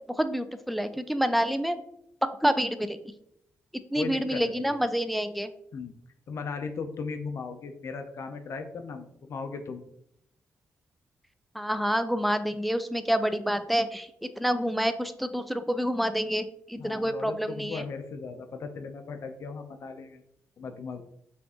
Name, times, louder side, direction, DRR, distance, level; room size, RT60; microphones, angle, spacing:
voice 1, 0.2-1.8 2.2-3.0 3.9-5.5 11.6-17.8, equal, ahead, 10 dB, 0.4 m, -28 dB
voice 2, 3.9-4.8 5.7-6.0 6.3-9.8 16.8-20.2 20.6-21.0, left 5 dB, 60° left, 6 dB, 0.5 m, -37 dB
5.8 x 2.5 x 3.6 m, 0.74 s
cardioid pair, 75°, 5 cm